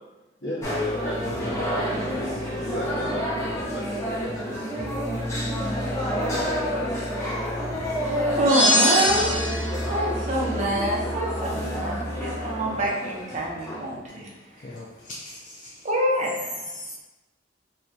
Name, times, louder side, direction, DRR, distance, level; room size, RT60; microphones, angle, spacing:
sound 1, 0.6-14.0, equal, 15° left, 0.8 m, -29 dB
voice 1, 1.0-4.6, equal, 70° left, -7 dB, 1.3 m, -35 dB
voice 2, 8.2-9.2 9.9-14.3 14.6-14.7 15.8-16.7, right 1 dB, 40° right, -3 dB, 0.7 m, -26 dB
sound 2, 8.5-9.8, equal, 70° right, 1.3 m, -22 dB
voice 3, 14.5-15.9 16.6-16.9, left 1 dB, 45° left, -4 dB, 0.4 m, -40 dB
4.3 x 2.3 x 2.7 m, 1.1 s
head